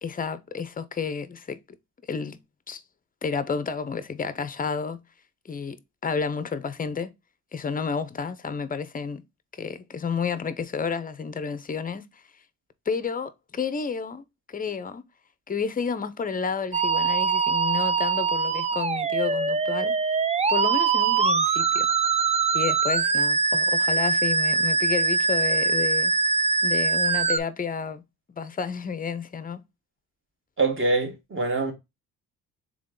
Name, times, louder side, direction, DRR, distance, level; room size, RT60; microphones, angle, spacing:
voice 1, 0.0-1.6 2.1-2.4 2.7-2.8 3.2-5.0 5.4-5.8 6.0-7.1 7.5-9.2 9.5-12.2 12.9-15.0 15.5-20.0 20.5-21.9 22.5-26.1 26.6-28.0 28.4-29.6, left 6 dB, 25° left, 0.6 m, -31 dB
Musical instrument, 16.7-27.4, right 4 dB, 20° right, 0.4 m, -23 dB
voice 2, 30.6-31.7, right 3 dB, 35° right, 1.8 m, -24 dB
3.6 x 3.5 x 3.7 m
cardioid pair, 80°, 37 cm